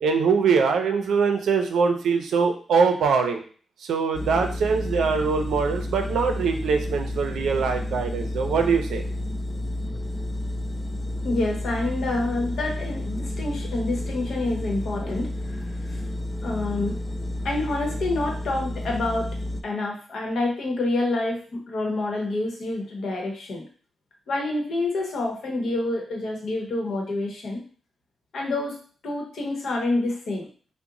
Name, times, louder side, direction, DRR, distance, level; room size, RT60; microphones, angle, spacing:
voice 1, 0.0-3.4 3.8-9.0, right 5 dB, 85° right, 5 dB, 0.5 m, -23 dB
sound 1, 4.1-19.6, left 1 dB, 15° left, 0.3 m, -31 dB
voice 2, 11.2-16.0 16.4-17.0 17.4-19.3 19.6-23.7 24.3-27.6 28.3-28.8 29.0-30.5, left 2 dB, 60° left, 0 dB, 0.9 m, -27 dB
2.9 x 2.1 x 3.7 m, 0.41 s
wide cardioid pair, 140°, 0 cm